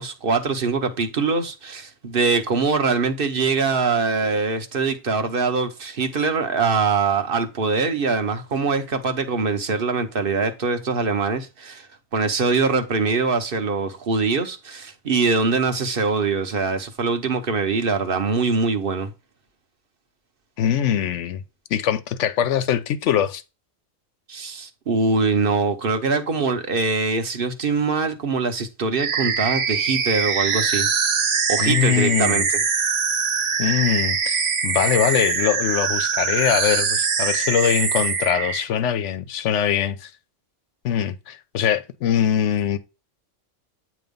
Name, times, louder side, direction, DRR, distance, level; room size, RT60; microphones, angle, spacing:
voice 1, 0.0-19.1 24.3-30.9 31.5-32.6, right 4 dB, 50° right, 1.2 m, -23 dB
voice 2, 20.6-21.4 21.7-23.4 31.6-32.4 33.6-40.1 40.8-42.8, left 9 dB, 75° left, 1.0 m, -22 dB
sound 1, 29.0-38.6, right 6 dB, 80° right, 1.3 m, -23 dB
8.9 x 3.1 x 5.2 m
omnidirectional pair, 1.3 m